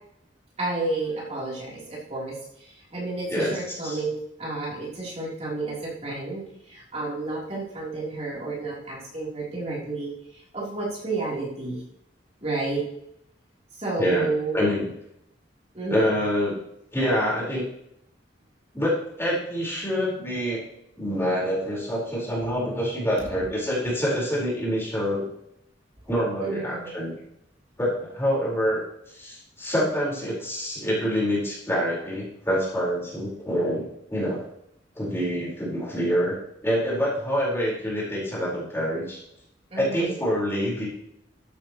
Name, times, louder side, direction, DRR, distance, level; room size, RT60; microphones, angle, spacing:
voice 1, 0.6-11.8 12.4-12.8 13.8-14.6 15.7-16.1 26.4-27.0 39.7-40.2, right 3 dB, 35° right, -6 dB, 3.6 m, -31 dB
voice 2, 14.0-14.3 14.5-14.9 15.9-16.6 16.9-17.7 18.7-20.6 21.0-25.3 26.1-27.2 27.8-34.5 34.9-39.2 39.8-40.9, equal, 15° left, -6 dB, 4.6 m, -26 dB
13.5 x 9.0 x 3.1 m, 0.76 s
head